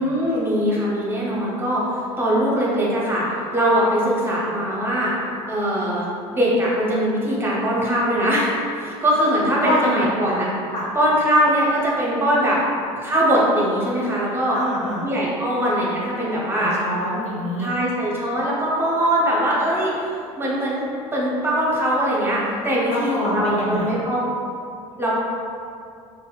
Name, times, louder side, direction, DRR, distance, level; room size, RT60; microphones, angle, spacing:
voice 1, 0.0-3.3 3.5-5.1 5.5-10.5 10.9-12.6 13.0-14.6 15.0-16.8 17.6-19.9 20.4-24.2 25.0-25.1, equal, 15° right, -6 dB, 0.9 m, -21 dB
voice 2, 9.6-10.1 10.7-10.9 14.5-15.0 16.6-17.7 22.9-24.0, left 1 dB, 40° left, -4 dB, 0.5 m, -26 dB
3.9 x 2.1 x 2.4 m, 2.5 s
hypercardioid pair, 65°, 18 cm